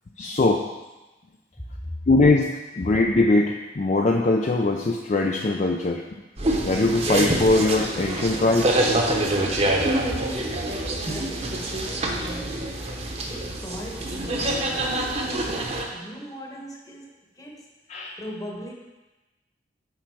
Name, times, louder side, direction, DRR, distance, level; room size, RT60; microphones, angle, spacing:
voice 1, 0.2-0.6 2.1-6.0 6.6-8.7 17.9-18.2, left 2 dB, 40° left, 1 dB, 0.4 m, -21 dB
voice 2, 1.6-2.0 2.8-3.0 10.1-12.7 13.3-17.7 18.2-18.7, equal, 20° left, -1 dB, 1.1 m, -39 dB
sound 1, 6.4-15.9, right 1 dB, 35° right, 0.9 m, -26 dB
7.7 x 5.1 x 4.7 m, 1.1 s
head